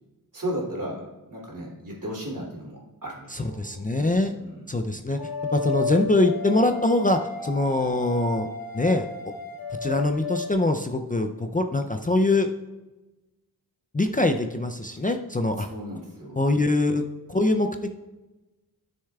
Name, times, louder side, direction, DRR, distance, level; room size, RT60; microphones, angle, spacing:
voice 1, 0.3-1.0 1.3-3.9 4.4-4.7 15.7-16.4, equal, 60° right, -4 dB, 2.8 m, -35 dB
voice 2, 3.3-4.3 4.7-5.2 5.5-8.5 8.7-9.1 9.8-12.5 13.9-15.7 16.4-17.0 17.3-17.7, left 2 dB, 25° left, 5 dB, 0.4 m, -23 dB
sound 1, 5.2-10.5, left 4 dB, 70° left, 0.9 m, -33 dB
11.5 x 6.4 x 2.3 m, 1.1 s
wide cardioid pair, 65°, 36 cm